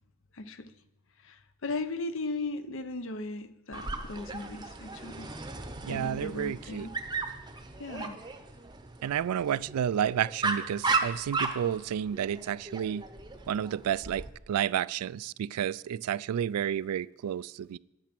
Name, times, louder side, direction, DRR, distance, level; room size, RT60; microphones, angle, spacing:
voice 1, 0.3-0.7 1.2-5.3 5.9-6.9 7.8-8.2, left 2 dB, 60° left, 0.7 m, -37 dB
Dog, 3.7-14.3, right 4 dB, 20° right, 0.7 m, -36 dB
voice 2, 5.8-6.9 9.0-13.0 13.5-17.8, right 9 dB, 90° right, 0.3 m, -31 dB
9.5 x 8.9 x 6.0 m
head